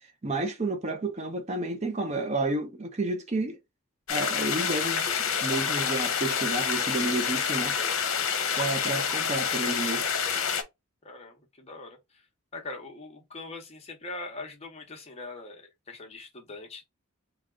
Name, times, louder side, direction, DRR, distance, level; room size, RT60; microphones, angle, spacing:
voice 1, 0.2-3.6 4.1-5.0 5.4-7.8 8.6-10.1, right 2 dB, 30° right, 0.6 m, -30 dB
sound 1, 4.1-10.6, left 6 dB, 70° left, 0.8 m, -28 dB
voice 2, 11.0-12.2 12.5-16.9, left 3 dB, 30° left, 1.0 m, -42 dB
3.6 x 2.3 x 3.6 m
head